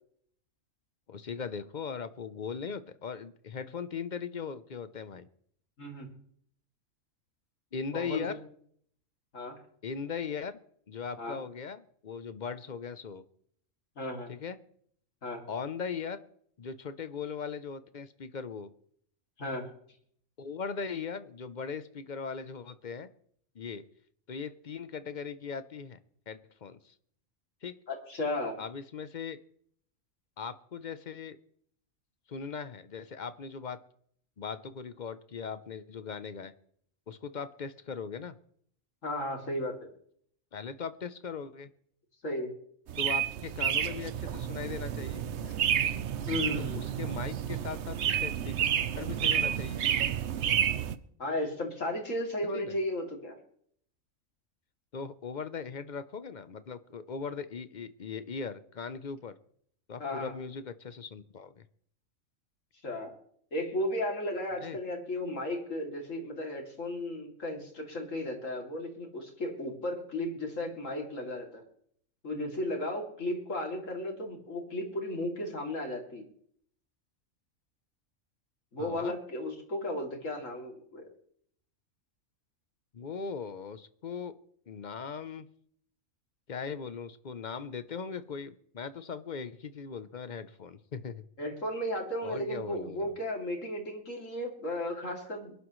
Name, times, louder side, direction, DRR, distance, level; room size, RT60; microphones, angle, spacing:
voice 1, 1.1-5.3 7.7-8.4 9.8-10.6 10.9-13.2 14.3-14.6 15.5-16.2 16.6-18.7 20.4-23.1 23.5-23.8 24.3-26.0 26.3-26.9 27.6-27.8 28.6-29.4 30.4-31.4 32.3-33.8 34.4-36.5 37.1-38.4 40.5-41.7 43.0-45.3 46.6-48.6 49.0-49.8 52.5-52.7 54.9-59.3 59.9-61.6 64.6-64.8 78.8-79.1 82.9-84.3 84.7-85.5 86.5-91.2 92.2-93.2, left 6 dB, 45° left, 13 dB, 0.7 m, -39 dB
voice 2, 7.9-8.2 9.3-9.6 11.2-11.4 14.0-14.3 15.2-15.4 19.4-19.6 27.9-28.6 39.0-39.8 42.2-42.5 46.3-46.8 51.2-53.3 60.0-60.3 62.8-63.1 63.5-71.6 72.2-76.2 78.7-81.1 91.4-95.5, left 1 dB, 70° left, 1 dB, 3.1 m, -34 dB
sound 1, 42.9-50.9, right 9 dB, 65° right, 1.0 m, -30 dB
22.5 x 11.5 x 3.1 m, 0.63 s
omnidirectional pair, 1.4 m